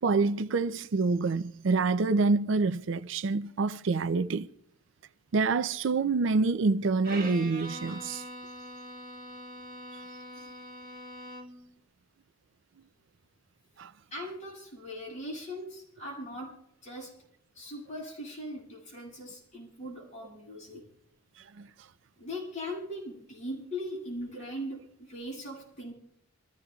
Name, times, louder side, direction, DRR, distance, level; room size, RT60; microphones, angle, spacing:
voice 1, 0.0-4.5 5.3-8.2 13.8-13.9 21.6-21.7, right 3 dB, 65° right, 0.5 m, -27 dB
Bowed string instrument, 7.0-11.7, right 1 dB, 45° right, 2.2 m, -43 dB
voice 2, 14.1-16.5 16.8-17.1 17.6-20.8 22.2-25.9, left 1 dB, 35° left, 7.6 m, -40 dB
26.5 x 15.0 x 2.3 m
head